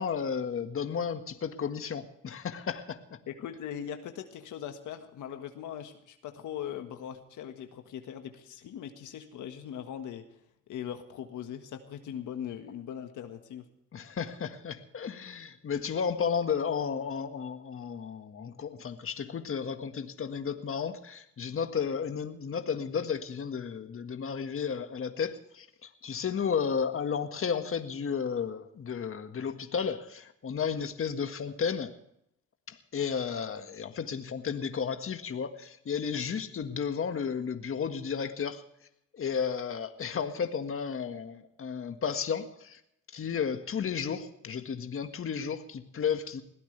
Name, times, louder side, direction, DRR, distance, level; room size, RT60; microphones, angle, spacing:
voice 1, 0.0-3.2 13.9-31.9 32.7-38.6 39.1-42.8 43.1-46.4, left 6 dB, 45° left, 7 dB, 1.7 m, -33 dB
voice 2, 3.3-10.2 10.7-13.7, left 9 dB, 80° left, 6 dB, 1.7 m, -40 dB
22.0 x 16.0 x 3.4 m, 0.75 s
cardioid pair, 90°, 30 cm